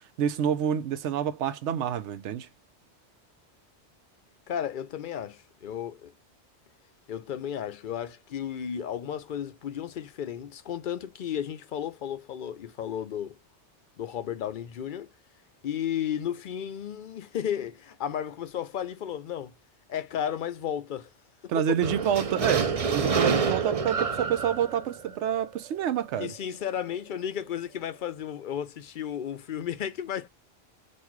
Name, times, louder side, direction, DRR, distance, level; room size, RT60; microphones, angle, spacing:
voice 1, 0.2-2.5 21.5-26.3, right 9 dB, 85° right, 0.9 m, -28 dB
voice 2, 4.5-6.1 7.1-13.4 14.0-15.1 15.6-19.5 19.9-21.1 21.4-21.8 26.2-30.3, left 9 dB, 55° left, 0.6 m, -33 dB
sound 1, 21.8-25.9, right 5 dB, 40° right, 0.5 m, -27 dB
4.1 x 2.4 x 4.5 m
omnidirectional pair, 1.2 m